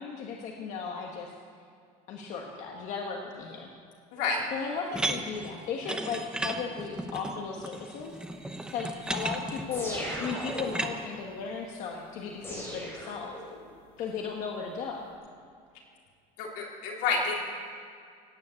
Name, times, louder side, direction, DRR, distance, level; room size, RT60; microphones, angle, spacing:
voice 1, 0.0-1.3 2.1-3.7 4.5-8.2 8.7-13.4 14.0-15.1, left 5 dB, 50° left, 0 dB, 1.5 m, -36 dB
voice 2, 4.1-4.4 16.4-17.4, left 4 dB, 70° left, -2 dB, 3.7 m, -29 dB
sound 1, 4.9-10.9, right 2 dB, 5° right, 0.8 m, -35 dB
sound 2, 9.7-10.9 12.4-13.7, equal, 15° left, 4.3 m, -38 dB
17.5 x 9.6 x 8.4 m, 2.2 s
cardioid pair, 175°, 16 cm